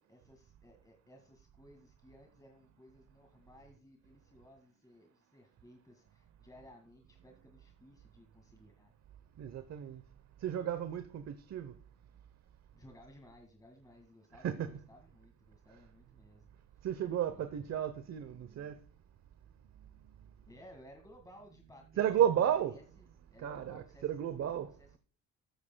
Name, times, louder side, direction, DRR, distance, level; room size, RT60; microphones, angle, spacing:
voice 1, 0.1-8.9 12.7-16.5 17.3-17.6 20.5-24.5 24.8-25.0, left 1 dB, 10° left, 1.9 m, -59 dB
voice 2, 9.4-10.0 10.4-11.7 14.3-14.7 16.8-18.8 22.0-22.8 23.4-24.7, right 10 dB, 60° right, 0.9 m, -33 dB
13.5 x 9.9 x 2.3 m
cardioid pair, 90°, 30 cm